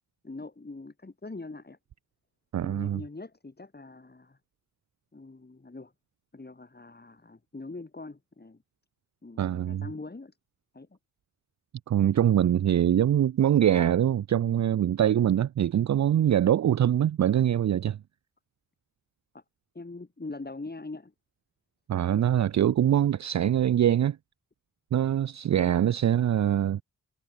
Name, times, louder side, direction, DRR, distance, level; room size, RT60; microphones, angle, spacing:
voice 1, 0.2-1.8 2.6-4.4 5.1-5.9 6.3-8.6 9.2-10.4 10.7-11.0 19.3-19.4 19.7-21.1 25.6-25.9, left 3 dB, 25° left, 7.3 m, -42 dB
voice 2, 2.5-3.0 9.4-9.8 11.9-18.0 21.9-24.2 24.9-26.8, right 10 dB, 50° right, 0.5 m, -23 dB
cardioid pair, 85°, 36 cm